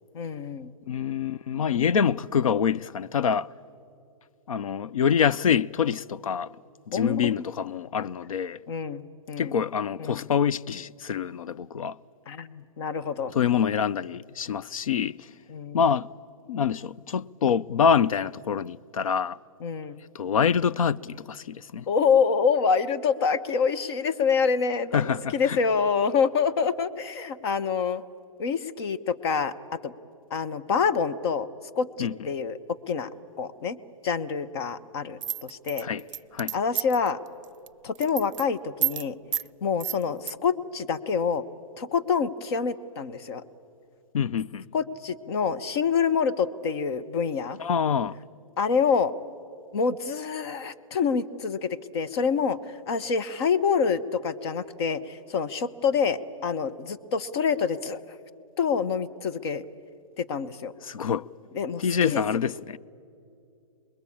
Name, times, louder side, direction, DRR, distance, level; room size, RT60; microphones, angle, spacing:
voice 1, 0.1-0.7 6.9-7.4 8.7-9.6 10.0-10.3 12.3-13.3 15.5-15.8 19.6-20.0 21.9-28.0 28.4-29.9 30.3-31.5 31.8-32.6 32.9-33.1 33.4-33.8 34.0-35.9 36.5-37.2 37.8-39.2 39.6-41.4 41.8-43.4 44.7-47.6 48.6-49.1 49.7-52.6 52.9-58.0 58.6-59.6 60.2-60.7 61.5-62.2, left 6 dB, 50° left, 1.2 m, -26 dB
voice 2, 0.9-3.5 4.5-6.5 6.9-8.6 9.4-12.0 13.3-15.3 15.7-16.1 16.5-19.4 20.1-21.8 24.9-25.6 32.0-32.2 35.8-36.0 36.3-36.6 44.1-44.7 47.6-48.2 60.8-61.3 61.8-62.8, left 7 dB, 75° left, 0.6 m, -26 dB
sound 1, 35.2-37.1 37.4-37.7 37.9-38.4 38.8-39.0 39.3-39.5 39.8-40.3, right 11 dB, 60° right, 0.5 m, -29 dB
28.0 x 21.5 x 8.7 m
hypercardioid pair, 145°, 18 cm